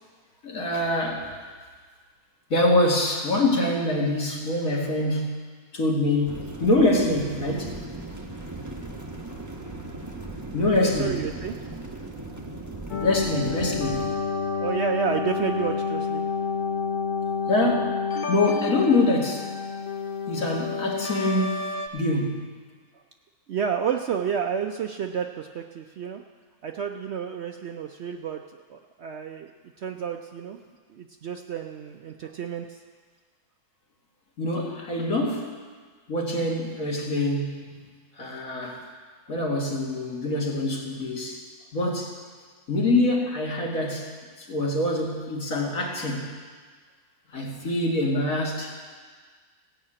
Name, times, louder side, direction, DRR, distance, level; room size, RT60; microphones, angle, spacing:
voice 1, 0.4-1.4 2.5-5.4 5.7-7.8 10.5-11.2 13.0-14.2 17.5-19.5 20.3-22.5 34.4-35.6 36.1-37.8 38.2-38.8 39.3-41.4 41.7-42.2 42.7-44.1 44.4-46.3 47.3-48.7, left 2 dB, 65° left, -1 dB, 2.2 m, -25 dB
sound 1, 6.2-14.1, right 2 dB, 15° right, 1.0 m, -38 dB
voice 2, 10.8-11.6 14.6-16.2 23.5-26.2 26.6-28.4 28.7-29.5 29.8-30.6 30.9-32.8, right 7 dB, 60° right, 4 dB, 0.7 m, -30 dB
sound 2, 12.9-21.9, left 5 dB, 40° left, 0.8 m, -29 dB
16.5 x 5.8 x 8.6 m, 1.5 s
omnidirectional pair, 1.6 m